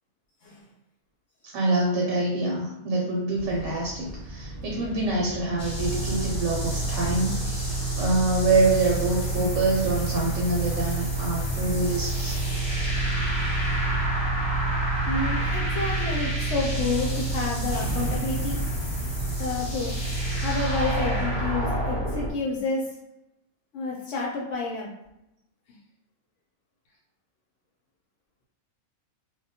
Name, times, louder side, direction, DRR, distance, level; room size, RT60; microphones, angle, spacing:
voice 1, 1.4-12.4, right 2 dB, 70° right, -2 dB, 0.9 m, -26 dB
sound 1, 3.3-19.3, right 1 dB, 40° right, 0.4 m, -39 dB
sound 2, 5.6-22.3, right 2 dB, 50° left, 0.4 m, -28 dB
voice 2, 13.4-13.8 15.1-18.6 18.9-19.9 20.4-23.0 23.7-24.9, left 3 dB, 65° left, -3 dB, 0.8 m, -30 dB
2.2 x 2.1 x 2.7 m, 0.86 s
omnidirectional pair, 1.5 m